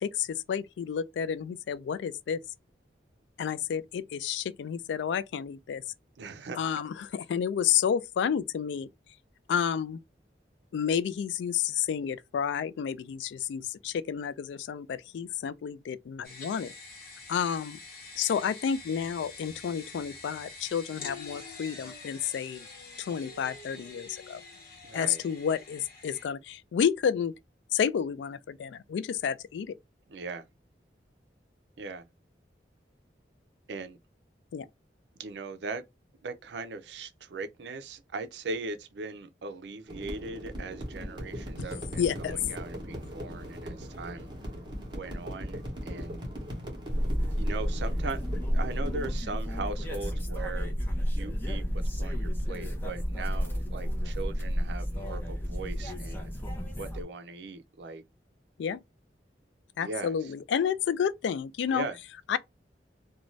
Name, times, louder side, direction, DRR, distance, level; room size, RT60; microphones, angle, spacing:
voice 1, 0.0-2.4 3.4-5.8 6.6-8.9 9.5-10.0 10.7-16.7 17.3-17.8 18.2-22.7 23.0-24.4 24.9-27.3 27.7-29.7 34.5-34.7 42.0-42.4 58.6-58.8 59.8-61.9 62.3-62.4, left 8 dB, 85° left, 0.3 m, -30 dB
voice 2, 6.2-6.6 24.8-25.2 30.1-30.4 31.8-32.1 33.7-34.0 35.2-35.8 36.2-44.3 44.9-46.2 47.4-48.2 48.5-50.8 51.1-56.3 56.8-58.0 59.8-60.1 61.7-62.0, right 3 dB, 75° right, 0.4 m, -39 dB
sound 1, 16.2-26.3, left 3 dB, 55° left, 1.0 m, -46 dB
sound 2, 39.9-49.2, equal, 25° right, 0.9 m, -39 dB
sound 3, 46.9-57.0, equal, 10° left, 0.6 m, -31 dB
2.6 x 2.2 x 3.0 m
head